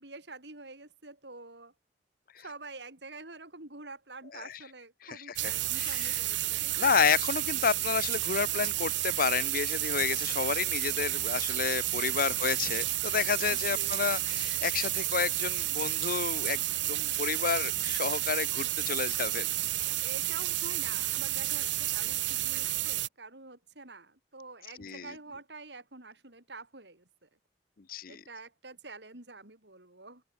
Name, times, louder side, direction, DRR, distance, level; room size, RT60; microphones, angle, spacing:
voice 1, 0.0-1.7 2.4-7.2 13.3-14.1 20.0-27.3 28.1-30.2, right 3 dB, 70° right, 4.7 m, -47 dB
voice 2, 5.0-6.2 6.5-19.5 24.8-25.2 27.9-28.2, left 6 dB, 55° left, 0.7 m, -31 dB
sound 1, 5.4-23.1, right 16 dB, 85° right, 0.9 m, -31 dB
Writing, 13.4-17.9, right 1 dB, 25° right, 5.8 m, -64 dB
open air
head